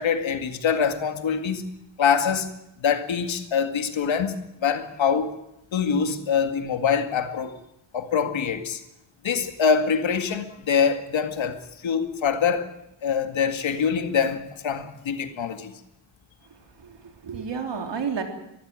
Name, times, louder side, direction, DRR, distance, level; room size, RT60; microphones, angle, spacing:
voice 1, 0.0-1.7 2.0-2.5 2.8-5.4 5.7-7.6 7.9-8.8 9.2-12.7 13.0-15.7, left 6 dB, 85° left, 2.1 m, -24 dB
voice 2, 16.5-18.2, right 6 dB, 70° right, 3.6 m, -32 dB
23.5 x 14.5 x 9.6 m
wide cardioid pair, 125°, 45 cm